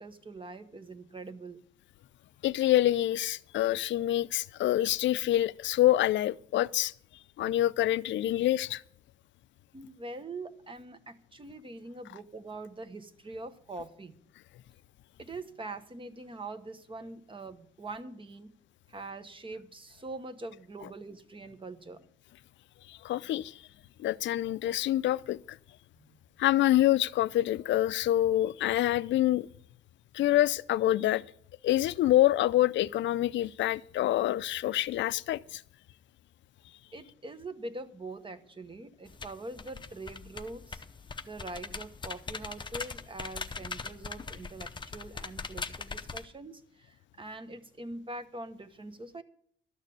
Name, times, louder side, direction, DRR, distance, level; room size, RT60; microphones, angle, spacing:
voice 1, 0.0-1.6 9.7-14.1 15.2-18.5 18.9-22.1 26.0-26.2 36.9-40.8 41.2-49.2, right 2 dB, 25° right, 1.1 m, -43 dB
voice 2, 2.4-6.9 7.4-8.8 22.9-23.6 24.0-25.6 26.4-29.5 30.1-31.2 31.6-35.6, left 14 dB, 70° left, 0.5 m, -26 dB
sound 1, 39.1-46.2, left 4 dB, 25° left, 0.7 m, -41 dB
12.5 x 6.6 x 8.4 m
cardioid pair, 90°, 20 cm